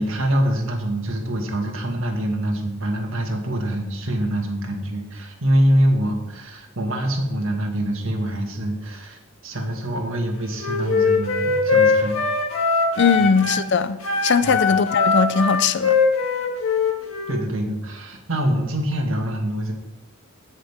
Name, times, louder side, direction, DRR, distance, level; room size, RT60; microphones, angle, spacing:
voice 1, 0.0-12.2 13.2-13.3 14.4-14.6 17.3-19.7, right 1 dB, 70° right, 1.9 m, -24 dB
Wind instrument woodwind instrument, 10.5-13.6 14.0-17.4, left 4 dB, 80° left, 1.9 m, -21 dB
voice 2, 13.0-16.0, left 5 dB, 60° left, 0.5 m, -20 dB
16.5 x 6.6 x 3.6 m
head